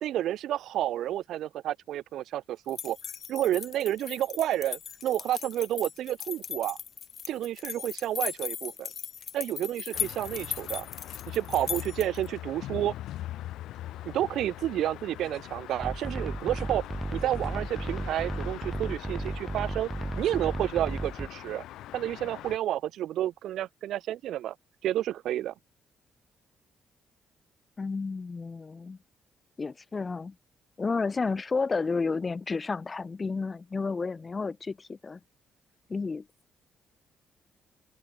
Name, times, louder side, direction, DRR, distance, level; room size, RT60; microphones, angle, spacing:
voice 1, 0.0-3.0 3.3-6.8 7.3-8.9 9.3-10.9 11.3-12.9 14.0-16.8 17.1-19.9 20.2-21.6 21.9-24.6 24.8-25.5, right 12 dB, 80° right, 0.4 m, -30 dB
sound 1, 2.7-12.3, left 8 dB, 55° left, 1.2 m, -38 dB
sound 2, 9.9-22.6, left 14 dB, 85° left, 4.3 m, -42 dB
sound 3, 15.8-21.3, right 2 dB, 15° right, 0.4 m, -34 dB
voice 2, 27.8-29.0 29.6-30.3 30.8-35.2 35.9-36.2, left 4 dB, 30° left, 0.7 m, -31 dB
cardioid pair, 90°, 0 cm